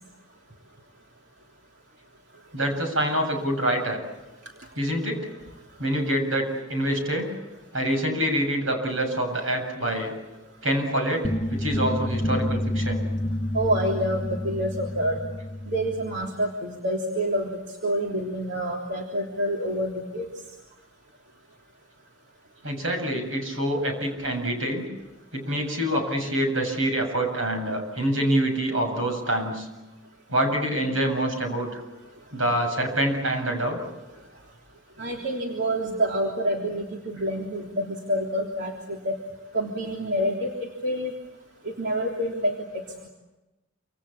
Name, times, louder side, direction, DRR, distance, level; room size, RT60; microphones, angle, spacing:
voice 1, 2.5-4.0 4.8-5.2 5.8-7.3 7.7-10.1 10.6-13.1 22.6-24.9 25.3-29.7 30.3-31.8 32.3-33.8, right 1 dB, 75° right, 4 dB, 7.6 m, -26 dB
sound 1, 11.2-16.2, left 1 dB, 25° left, 1.1 m, -29 dB
voice 2, 13.5-15.2 15.7-17.5 17.8-20.2 35.0-39.1 39.5-40.5 40.8-41.1 41.6-42.5, equal, 55° right, -1 dB, 3.4 m, -27 dB
28.0 x 27.0 x 7.3 m, 1.0 s
head